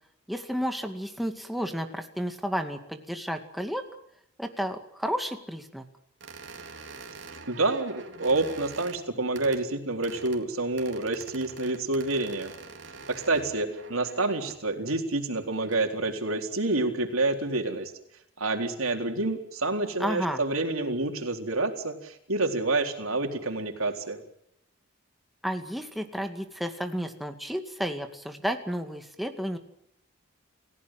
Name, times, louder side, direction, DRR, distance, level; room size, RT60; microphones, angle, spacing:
voice 1, 0.3-3.8 4.4-5.8 20.0-20.4 25.4-29.6, equal, ahead, 5 dB, 2.1 m, -32 dB
sound 1, 6.2-9.0 9.4-9.6 10.0-10.4 10.8-14.6 15.4-15.8, right 4 dB, 60° right, 3.9 m, -45 dB
voice 2, 7.5-12.5 13.1-17.9 18.4-24.2, right 2 dB, 85° right, 4 dB, 4.1 m, -28 dB
29.5 x 16.0 x 7.7 m, 0.76 s
head